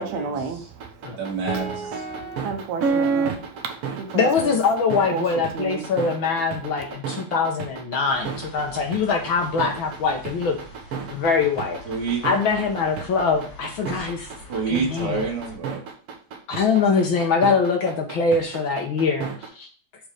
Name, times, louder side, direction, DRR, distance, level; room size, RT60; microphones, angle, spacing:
voice 1, 0.0-1.2 2.1-4.5 5.1-5.3 5.5-5.9 6.6-6.7, right 5 dB, 75° right, 5 dB, 2.2 m, -32 dB
sound 1, 0.8-19.5, right 5 dB, 60° right, 2.1 m, -30 dB
voice 2, 1.2-2.0 11.8-12.2 14.3-15.8, right 4 dB, 40° right, -3 dB, 2.3 m, -28 dB
voice 3, 4.1-10.6 11.1-11.8 12.2-14.3 14.7-15.2 16.5-19.7, left 5 dB, 65° left, 3 dB, 1.2 m, -23 dB
sound 2, 8.1-15.6, left 1 dB, 35° left, 3.2 m, -45 dB
6.5 x 4.7 x 4.9 m, 0.42 s
omnidirectional pair, 3.3 m